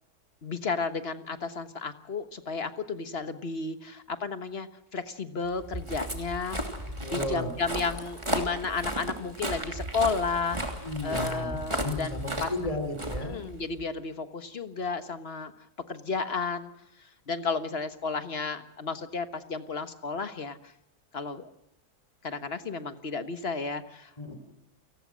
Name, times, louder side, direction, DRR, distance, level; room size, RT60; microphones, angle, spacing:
voice 1, 0.4-6.6 7.1-12.5 13.2-15.5 15.9-16.7 17.3-20.6 21.1-21.5 22.2-24.1, left 4 dB, 40° left, 10 dB, 1.5 m, -33 dB
Walk footsteps, 5.6-13.8, right 1 dB, 20° right, 2.9 m, -35 dB
voice 2, 7.0-7.5 10.8-13.3 24.2-24.3, left 2 dB, 20° left, 7 dB, 4.1 m, -33 dB
29.0 x 19.0 x 6.3 m, 0.84 s
omnidirectional pair, 1.7 m